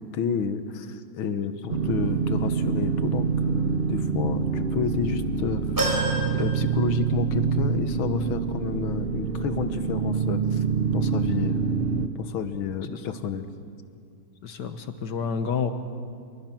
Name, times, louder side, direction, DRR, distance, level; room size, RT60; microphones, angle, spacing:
voice 1, 0.0-5.6 6.3-10.6 10.9-13.5, left 6 dB, 80° left, 10 dB, 1.9 m, -30 dB
sound 1, 1.7-12.1, right 6 dB, 40° right, 1.0 m, -26 dB
sound 2, 5.8-7.4 7.8-7.9 9.1-9.2, right 1 dB, 10° right, 4.3 m, -30 dB
voice 2, 14.4-15.7, left 6 dB, 60° left, 9 dB, 1.7 m, -29 dB
28.0 x 22.5 x 6.0 m, 2.3 s
omnidirectional pair, 2.2 m